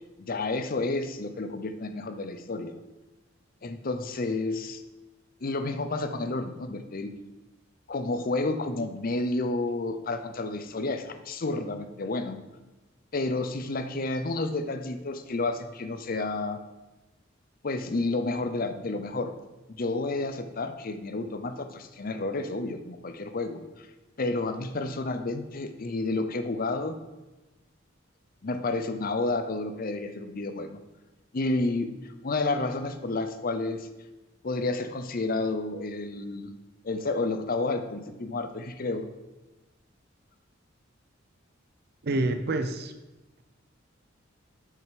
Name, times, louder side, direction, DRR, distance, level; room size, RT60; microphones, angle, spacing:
voice 1, 0.2-2.8 3.6-4.8 5.4-7.1 7.9-12.4 13.1-16.6 17.6-19.3 19.7-23.9 24.2-27.0 28.4-30.8 31.3-31.9 32.2-33.9 34.4-36.5 36.8-39.1, left 2 dB, 45° left, 8 dB, 0.6 m, -30 dB
voice 2, 42.0-42.9, right 2 dB, 50° right, 8 dB, 0.6 m, -27 dB
6.4 x 5.7 x 5.1 m, 1.1 s
head